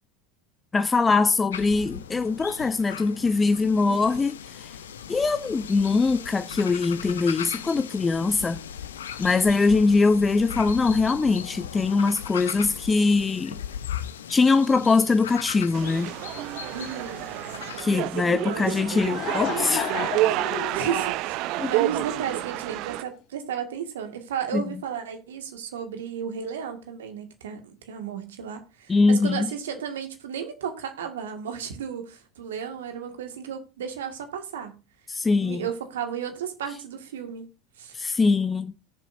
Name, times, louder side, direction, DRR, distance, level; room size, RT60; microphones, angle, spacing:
voice 1, 0.7-4.8 5.1-8.6 9.2-13.5 14.3-16.1 17.8-19.9 21.6-21.7 24.5-24.6 28.9-29.5 35.1-35.6 37.9-38.7, left 4 dB, 20° left, 0.6 m, -22 dB
sound 1, 1.5-17.8, left 9 dB, 70° left, 0.8 m, -38 dB
voice 2, 3.9-4.2 16.7-17.3 18.2-18.8 20.7-34.8 35.4-37.5 37.8-37.9, right 8 dB, 65° right, 2.0 m, -34 dB
sound 2, 15.7-23.0, right 17 dB, 50° right, 0.4 m, -29 dB
Laughter / Crowd, 18.6-22.4, left 10 dB, 50° left, 1.4 m, -33 dB
18.0 x 7.3 x 2.7 m
figure-of-eight pair, 75°, 0 cm